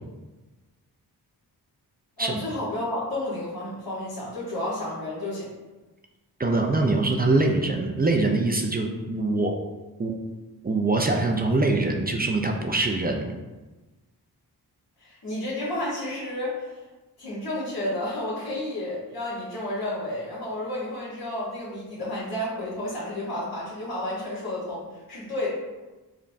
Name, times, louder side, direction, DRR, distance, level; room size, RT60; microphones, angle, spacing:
voice 1, 2.2-5.5 15.0-16.8 17.2-25.5, left 1 dB, 60° left, -8 dB, 1.2 m, -31 dB
voice 2, 6.4-9.5 10.0-10.1 10.6-13.3, right 2 dB, 25° right, 2 dB, 0.4 m, -23 dB
5.0 x 2.1 x 2.6 m, 1.2 s
cardioid pair, 65°, 40 cm